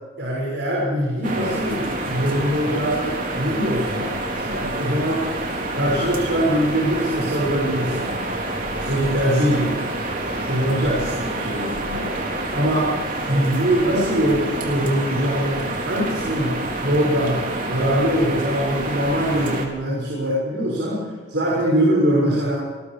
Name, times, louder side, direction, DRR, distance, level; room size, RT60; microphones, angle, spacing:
voice 1, 0.2-5.3 5.7-8.2 8.8-9.8 10.5-12.9 13.3-22.6, equal, 65° right, -4 dB, 6.5 m, -22 dB
sound 1, 1.2-19.7, right 2 dB, 45° right, 3.8 m, -28 dB
28.0 x 20.5 x 5.0 m, 1.5 s
head